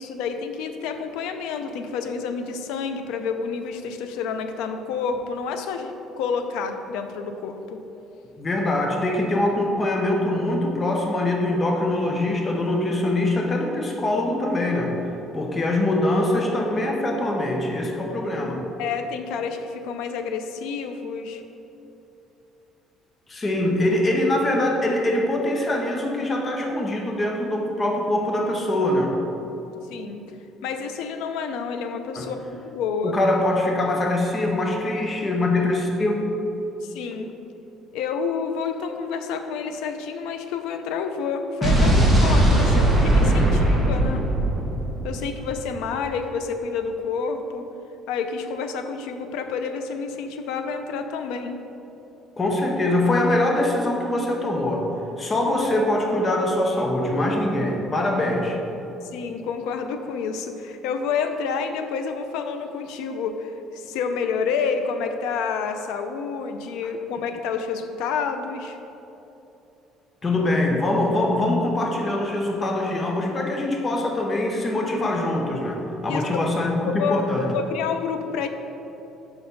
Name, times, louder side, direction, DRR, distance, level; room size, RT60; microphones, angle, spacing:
voice 1, 0.0-7.8 18.8-21.4 29.9-30.2 30.6-33.1 36.8-37.3 37.9-44.2 45.0-47.7 48.1-51.6 59.1-68.8 76.1-76.4 76.9-78.5, left 5 dB, 90° left, 7 dB, 0.5 m, -29 dB
voice 2, 8.4-14.9 15.3-18.6 23.3-29.1 32.2-32.3 33.0-36.3 43.4-43.5 52.4-54.8 55.2-58.6 70.2-77.5, left 1 dB, 25° left, 1 dB, 0.7 m, -23 dB
Explosion, 41.6-45.7, right 1 dB, ahead, 1.4 m, -19 dB
5.6 x 4.4 x 5.3 m, 3.0 s
cardioid pair, 150°, 0 cm